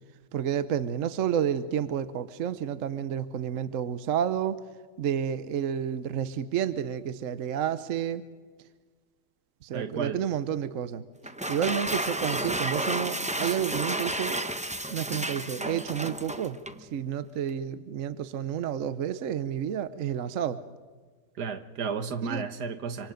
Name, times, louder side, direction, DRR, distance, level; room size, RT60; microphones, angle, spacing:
voice 1, 0.3-4.6 5.0-8.2 9.6-11.0 11.5-14.4 14.9-20.6 22.3-22.5, right 9 dB, 60° right, 13 dB, 1.1 m, -30 dB
voice 2, 9.7-10.2 21.4-23.1, right 6 dB, 80° right, 9 dB, 1.8 m, -33 dB
sound 1, 11.2-16.8, right 1 dB, 10° right, 0.4 m, -32 dB
26.5 x 25.5 x 5.2 m, 1.5 s
omnidirectional pair, 1.7 m